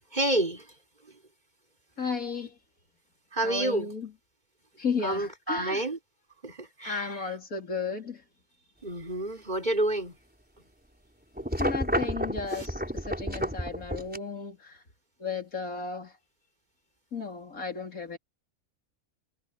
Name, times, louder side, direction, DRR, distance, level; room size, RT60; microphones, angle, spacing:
voice 1, 0.1-0.7 1.1-1.2 3.3-3.9 5.0-6.0 6.4-7.3 8.8-10.2 12.5-12.7, right 1 dB, 30° right, 5.1 m, -29 dB
voice 2, 2.0-2.6 3.4-4.1 4.8-5.8 6.8-8.2 11.6-14.8 15.2-16.1 17.1-18.2, left 5 dB, 70° left, 4.0 m, -34 dB
sound 1, 11.4-14.2, equal, 5° right, 4.5 m, -30 dB
omnidirectional pair, 1.5 m